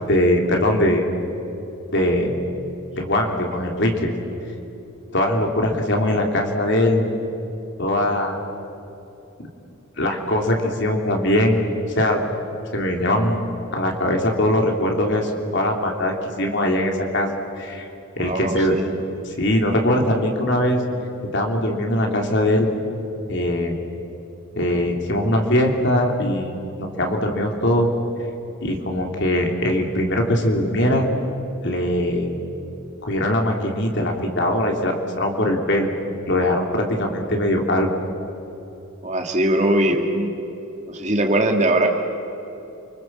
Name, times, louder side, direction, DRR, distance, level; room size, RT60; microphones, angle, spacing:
voice 1, 0.1-1.0 1.9-2.4 3.0-4.1 5.1-7.1 7.8-8.4 10.0-11.6 12.0-12.2 12.7-13.4 13.7-17.3 17.6-17.9 18.2-18.8 19.2-20.8 21.3-22.7 23.3-23.7 24.5-26.5 26.8-27.9 28.6-31.1 31.6-32.4 33.0-35.9 36.3-37.9, left 1 dB, 55° left, 2 dB, 3.3 m, -21 dB
voice 2, 18.2-18.9 39.0-40.3 40.9-41.9, right 1 dB, 35° right, 3 dB, 2.5 m, -20 dB
29.5 x 25.5 x 7.6 m, 2.9 s
head